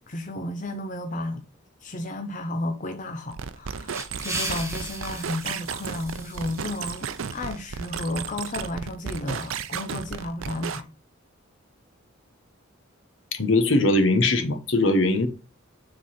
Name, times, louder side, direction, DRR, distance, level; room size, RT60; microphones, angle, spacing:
voice 1, 0.1-1.5 1.8-10.9, left 1 dB, 40° left, 0.7 m, -33 dB
sound 1, 3.3-10.8, right 6 dB, 85° right, 0.6 m, -34 dB
sound 2, 3.6-8.1, right 2 dB, 15° right, 1.7 m, -37 dB
voice 2, 13.3-15.3, left 2 dB, 65° left, 1.1 m, -21 dB
7.4 x 3.9 x 4.2 m
head